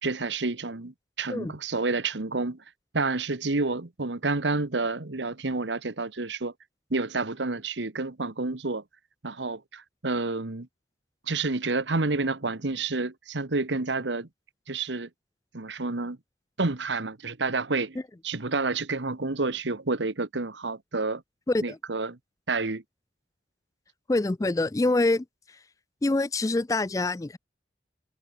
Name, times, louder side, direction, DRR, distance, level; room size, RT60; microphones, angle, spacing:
voice 1, 0.0-2.6 2.9-6.5 6.9-8.8 9.2-10.7 11.3-14.3 14.7-15.1 15.5-16.2 16.6-18.0 18.2-21.2 21.6-22.2 22.5-22.8, right 3 dB, 90° right, 1.4 m, -29 dB
voice 2, 24.1-25.2 26.0-27.4, left 2 dB, 20° left, 0.3 m, -25 dB
head